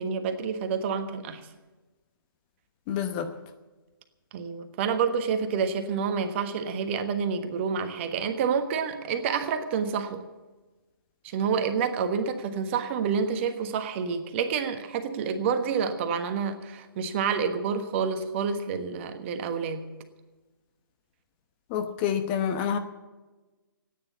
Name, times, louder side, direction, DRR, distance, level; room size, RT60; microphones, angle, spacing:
voice 1, 0.0-1.4 4.3-10.2 11.2-19.9, right 6 dB, 30° right, 8 dB, 1.3 m, -28 dB
voice 2, 2.9-3.3 21.7-22.8, left 8 dB, 25° left, 7 dB, 1.0 m, -27 dB
14.5 x 9.5 x 8.5 m, 1.2 s
figure-of-eight pair, 135°, 12 cm